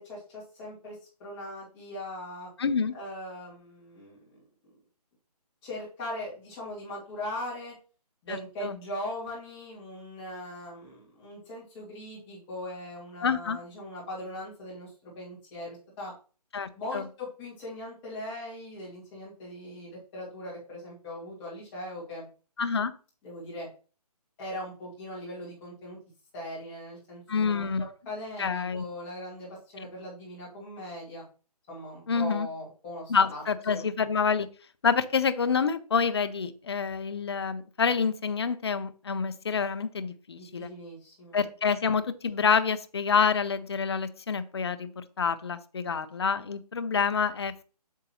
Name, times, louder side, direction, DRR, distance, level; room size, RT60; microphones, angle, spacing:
voice 1, 0.0-2.5 2.9-4.4 5.6-7.7 8.2-16.1 16.8-22.3 23.2-23.7 24.4-26.0 26.3-31.2 31.7-33.4 33.7-33.8 40.3-41.4, left 1 dB, 15° left, -6 dB, 2.2 m, -40 dB
voice 2, 2.6-2.9 8.3-8.8 13.2-13.6 16.5-17.0 22.6-22.9 27.3-27.9 28.4-28.8 32.1-32.5 33.1-34.5 34.8-40.7 41.3-47.6, left 6 dB, 40° left, 12 dB, 0.5 m, -27 dB
8.1 x 6.6 x 2.9 m, 0.37 s
hypercardioid pair, 170°, 21 cm